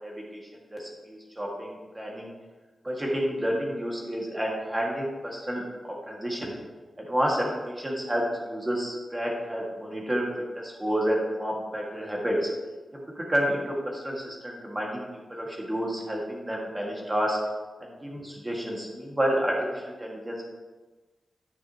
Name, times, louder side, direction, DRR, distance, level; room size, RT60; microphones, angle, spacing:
voice 1, 0.7-2.3 2.8-5.6 6.1-6.5 7.1-10.2 10.5-12.5 12.9-13.7 14.0-15.0 15.3-17.4 17.8-19.5 20.0-20.4, equal, 15° right, -2 dB, 1.6 m, -29 dB
10.5 x 6.3 x 2.8 m, 1.2 s
wide cardioid pair, 165°, 0 cm